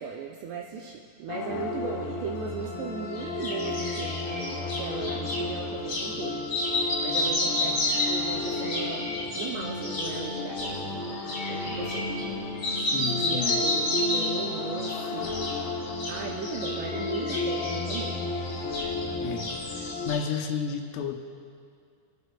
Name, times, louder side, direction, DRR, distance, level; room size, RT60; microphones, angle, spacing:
voice 1, 0.0-6.4 7.0-11.2 11.5-12.1 13.2-15.4 16.1-18.4, right 6 dB, 90° right, 0 dB, 2.4 m, -37 dB
sound 1, 1.3-20.1, left 3 dB, 75° left, 2.2 m, -33 dB
sound 2, 3.1-5.4 5.8-6.1 6.4-12.3 12.6-14.4 14.8-15.6 15.8-19.1 19.4-20.4, left 1 dB, 30° left, 2.2 m, -31 dB
voice 2, 12.8-13.6 18.8-18.9 19.2-21.2, left 7 dB, 90° left, 4 dB, 3.5 m, -32 dB
22.0 x 12.0 x 2.2 m, 2.4 s
omnidirectional pair, 5.7 m